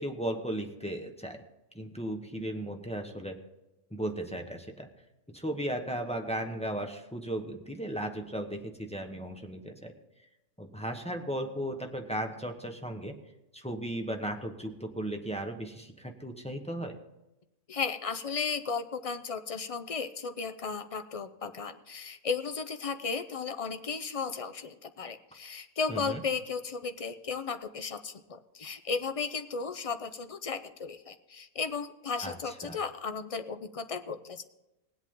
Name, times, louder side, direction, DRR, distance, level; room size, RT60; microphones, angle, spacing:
voice 1, 0.0-1.4 1.7-3.4 3.9-4.9 5.3-9.9 10.6-13.2 13.5-17.0 25.9-26.2 32.2-32.8, right 1 dB, 5° left, 3 dB, 0.9 m, -36 dB
voice 2, 17.7-34.5, left 5 dB, 45° left, 10 dB, 0.4 m, -35 dB
19.5 x 8.3 x 3.7 m, 0.96 s
omnidirectional pair, 1.4 m